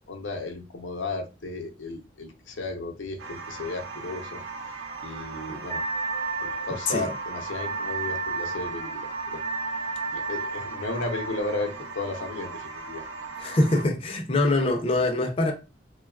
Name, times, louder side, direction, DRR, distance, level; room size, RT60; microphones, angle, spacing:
voice 1, 0.0-4.4 5.0-5.8 6.4-9.4 10.1-13.0, left 3 dB, 85° left, 0.6 m, -34 dB
sound 1, 3.2-13.8, right 4 dB, 85° right, 0.6 m, -38 dB
Wind instrument woodwind instrument, 5.7-11.3, right 4 dB, 40° right, 0.6 m, -33 dB
voice 2, 13.4-15.5, left 2 dB, 30° left, 0.4 m, -23 dB
3.0 x 2.2 x 2.3 m
head